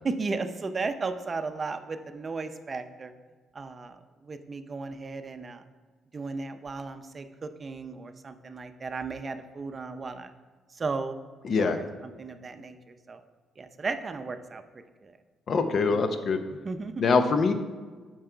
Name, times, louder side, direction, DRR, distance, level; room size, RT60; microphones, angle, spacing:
voice 1, 0.0-3.1 3.5-5.6 6.1-10.3 10.7-11.2 11.6-13.2 13.6-14.6 15.0-15.1 15.5-16.1 16.5-17.0, right 4 dB, 35° right, 9 dB, 0.6 m, -35 dB
voice 2, 11.4-11.8 15.5-16.4 17.0-17.5, left 4 dB, 55° left, 8 dB, 0.7 m, -23 dB
7.6 x 4.7 x 4.5 m, 1.4 s
cardioid pair, 90°, 0 cm